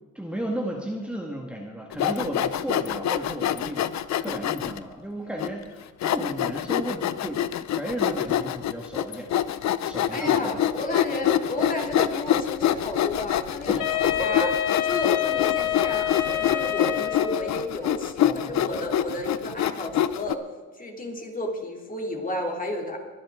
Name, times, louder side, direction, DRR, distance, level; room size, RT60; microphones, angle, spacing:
voice 1, 0.2-7.4 7.8-9.3 9.8-10.6 13.7-14.5 18.2-18.7, right 1 dB, 5° right, -1 dB, 1.7 m, -34 dB
Sawing, 1.9-4.8 5.4-5.5 6.0-20.3, left 11 dB, 65° left, 0.7 m, -26 dB
voice 2, 10.1-13.8 14.2-14.5 14.9-20.4 20.8-23.0, left 1 dB, 30° left, 1 dB, 3.2 m, -32 dB
Wind instrument woodwind instrument, 13.8-17.7, left 12 dB, 80° left, 1.1 m, -27 dB
22.5 x 10.5 x 3.8 m, 1.4 s
cardioid pair, 90°, 30 cm